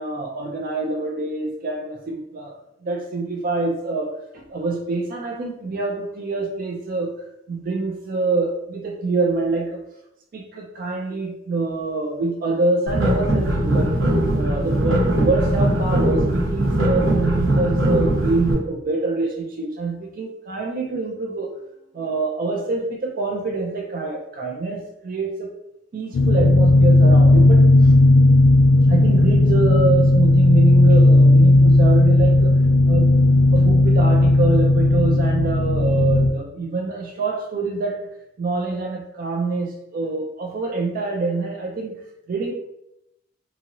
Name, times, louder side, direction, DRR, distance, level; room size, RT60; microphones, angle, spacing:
voice 1, 0.0-2.5 2.8-7.1 7.5-9.8 10.3-14.0 14.3-21.5 21.9-25.5 25.9-27.9 28.9-32.6 32.9-33.2 33.5-38.0 38.4-41.9 42.3-42.5, right 3 dB, 45° right, 1 dB, 0.3 m, -25 dB
sound 1, 12.9-18.5, right 1 dB, 80° right, 1.0 m, -20 dB
sound 2, 26.1-36.3, left 2 dB, 75° left, 0.3 m, -14 dB
2.8 x 2.7 x 2.6 m, 0.83 s
head